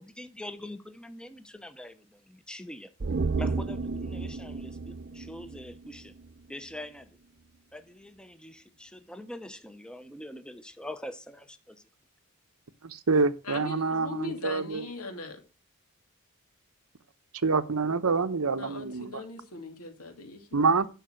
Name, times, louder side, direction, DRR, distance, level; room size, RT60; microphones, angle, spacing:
voice 1, 0.0-2.9 3.4-6.1 6.5-7.2 7.7-11.8, left 1 dB, 5° left, 0.8 m, -44 dB
sound 1, 3.0-6.4 6.7-6.8, right 4 dB, 45° right, 0.5 m, -33 dB
voice 2, 12.8-14.9 17.4-19.2 20.5-20.9, right 4 dB, 80° right, 0.9 m, -26 dB
voice 3, 13.5-15.4 18.5-20.5 20.7-20.8, left 3 dB, 80° left, 2.6 m, -39 dB
11.5 x 5.7 x 6.4 m
head